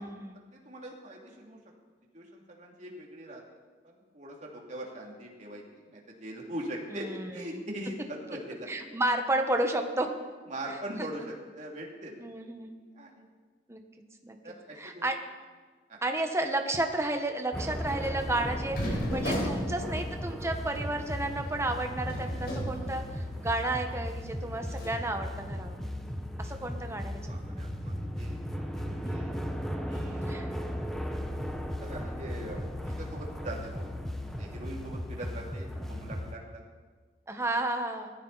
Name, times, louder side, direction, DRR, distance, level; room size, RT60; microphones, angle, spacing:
voice 1, 0.0-0.3 6.9-7.6 8.7-10.2 12.2-12.7 13.7-13.8 14.2-14.4 14.8-15.2 16.0-25.8 26.4-27.5 30.2-30.5 37.3-38.1, right 2 dB, 15° right, 5 dB, 1.3 m, -32 dB
voice 2, 0.5-1.6 2.1-3.4 3.8-8.7 10.5-12.2 12.7-13.3 14.4-15.1 15.9-16.0 27.3-29.3 29.9-30.2 31.6-33.9 34.4-36.6, right 1 dB, 45° right, -1 dB, 2.6 m, -42 dB
sound 1, 17.5-36.3, equal, ahead, 1.1 m, -36 dB
sound 2, 18.7-23.6 24.0-24.1 24.7-25.0, equal, 60° left, 4.3 m, -36 dB
19.5 x 14.0 x 4.1 m, 1.4 s
head